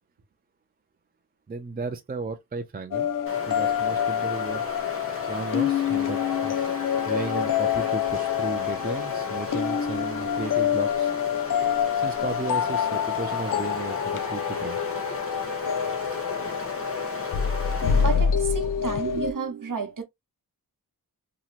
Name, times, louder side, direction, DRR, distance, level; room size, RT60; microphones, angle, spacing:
voice 1, 1.5-3.1 3.5-4.6 5.3-6.6 7.1-11.1 12.0-14.8, right 4 dB, 25° right, 0.4 m, -35 dB
sound 1, 2.9-19.3, left 8 dB, 55° left, 0.5 m, -26 dB
Stream, 3.3-18.3, left 2 dB, 35° left, 0.9 m, -37 dB
voice 2, 17.9-20.0, right 4 dB, 50° right, 0.9 m, -31 dB
2.9 x 2.8 x 2.4 m
wide cardioid pair, 100°, 40 cm